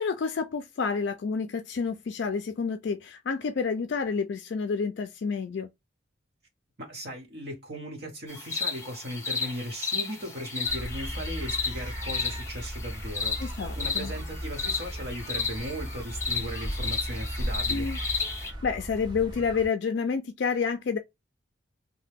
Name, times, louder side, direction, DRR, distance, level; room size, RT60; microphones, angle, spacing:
voice 1, 0.0-5.7 13.4-14.1 17.7-18.0 18.4-21.0, left 5 dB, 60° left, 0.3 m, -29 dB
voice 2, 6.8-17.9, equal, 55° right, 1.1 m, -37 dB
sound 1, 8.3-18.5, left 5 dB, 15° left, 0.7 m, -33 dB
sound 2, 10.6-19.7, equal, 20° right, 0.5 m, -36 dB
2.8 x 2.1 x 3.4 m
head